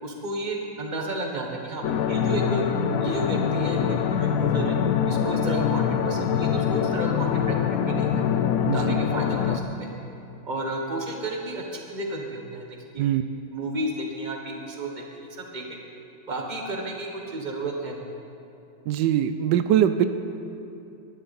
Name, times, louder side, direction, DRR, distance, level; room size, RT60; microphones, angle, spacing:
voice 1, 0.0-2.6 3.0-4.8 5.1-8.2 8.7-9.9 10.4-13.1 13.5-15.8 16.3-18.0, right 2 dB, 25° right, 1 dB, 1.5 m, -32 dB
sound 1, 1.8-9.6, left 8 dB, 65° left, 0.9 m, -24 dB
voice 2, 8.6-9.0 13.0-13.2 18.9-20.1, right 10 dB, 85° right, 10 dB, 1.2 m, -22 dB
18.5 x 11.5 x 4.2 m, 2.7 s
omnidirectional pair, 1.9 m